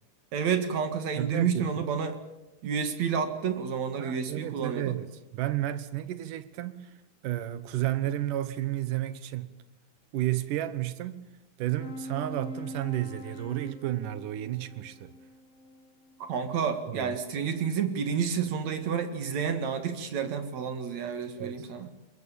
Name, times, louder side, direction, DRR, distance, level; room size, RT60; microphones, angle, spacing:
voice 1, 0.3-2.2 2.6-5.0 16.2-21.9, right 7 dB, 65° right, 2.9 m, -30 dB
voice 2, 1.2-1.7 4.0-6.9 7.2-9.5 10.1-11.3 11.6-15.1 16.9-17.2 21.4-21.6, right 14 dB, 85° right, 2.7 m, -32 dB
sound 1, 11.8-16.6, left 1 dB, 75° left, 0.6 m, -43 dB
21.5 x 21.5 x 8.7 m
omnidirectional pair, 3.6 m